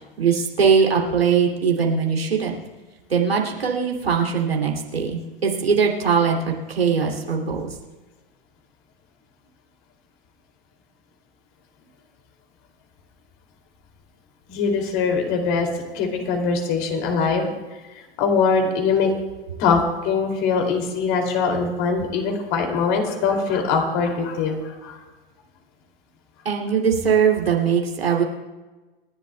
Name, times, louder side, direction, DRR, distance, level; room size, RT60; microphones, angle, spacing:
voice 1, 0.2-2.6 3.1-7.7 26.4-28.2, right 6 dB, 85° right, 0 dB, 2.6 m, -21 dB
voice 2, 14.5-15.7 15.9-17.6 18.2-19.1 19.6-25.0, left 5 dB, 45° left, 2 dB, 2.6 m, -22 dB
28.0 x 11.0 x 2.2 m, 1.2 s
hypercardioid pair, 100°, 29 cm